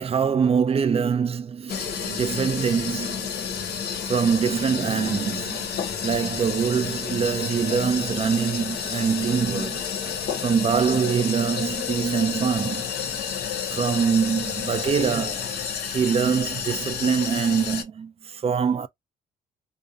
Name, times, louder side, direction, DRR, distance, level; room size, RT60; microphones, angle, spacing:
voice 1, 0.0-3.3 4.1-5.7 6.0-9.8 10.4-12.9 13.7-15.5 15.8-18.9, right 6 dB, 30° right, 0.3 m, -24 dB
sound 1, 1.7-17.8, left 7 dB, 60° left, 0.6 m, -30 dB
2.4 x 2.0 x 2.5 m
hypercardioid pair, 55°, 19 cm